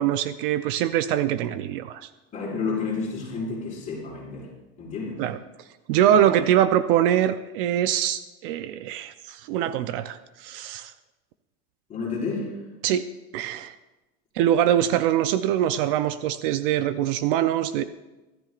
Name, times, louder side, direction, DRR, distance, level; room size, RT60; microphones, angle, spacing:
voice 1, 0.0-2.1 5.2-5.4 5.9-10.9 12.8-13.0 13.3-13.8 14.3-17.8, right 11 dB, 55° right, 11 dB, 0.6 m, -23 dB
voice 2, 2.3-4.5 4.8-5.2 6.1-6.3 11.9-12.6, left 4 dB, 20° left, -5 dB, 5.2 m, -30 dB
23.5 x 14.0 x 2.5 m, 1.1 s
cardioid pair, 180°, 32 cm